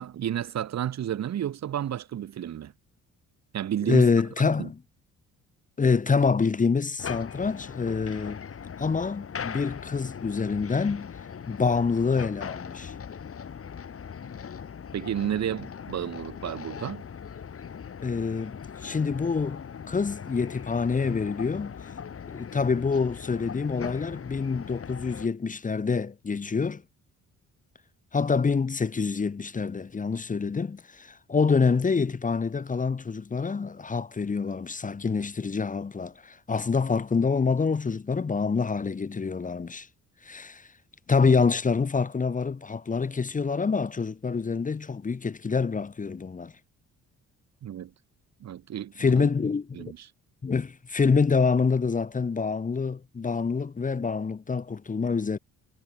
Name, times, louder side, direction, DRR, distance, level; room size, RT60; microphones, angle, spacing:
voice 1, 0.0-2.7 3.5-4.1 4.4-4.7 14.9-17.0 47.6-47.9 48.4-49.3 49.7-50.1, right 10 dB, 60° right, 2.1 m, -31 dB
voice 2, 3.9-4.8 5.8-8.4 8.8-11.1 11.5-12.9 18.0-19.6 19.9-21.9 22.3-26.8 28.1-39.9 40.2-40.7 41.1-46.5 49.0-49.9 50.4-55.4, left 5 dB, 25° left, 1.1 m, -26 dB
sound 1, 7.0-25.3, left 7 dB, 50° left, 5.9 m, -40 dB
cardioid pair, 90°, 30 cm